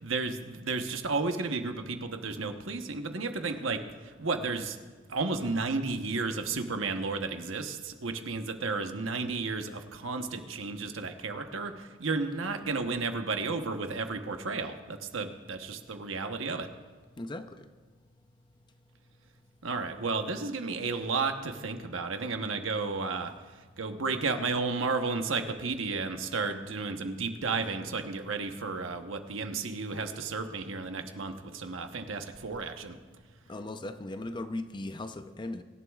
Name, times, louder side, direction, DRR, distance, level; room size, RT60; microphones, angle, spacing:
voice 1, 0.0-4.8 5.1-16.7 19.6-23.3 23.8-33.0, right 4 dB, 90° right, 6 dB, 1.0 m, -33 dB
voice 2, 33.5-35.6, left 2 dB, 25° left, 9 dB, 0.5 m, -37 dB
24.0 x 11.5 x 2.4 m, 1.4 s
head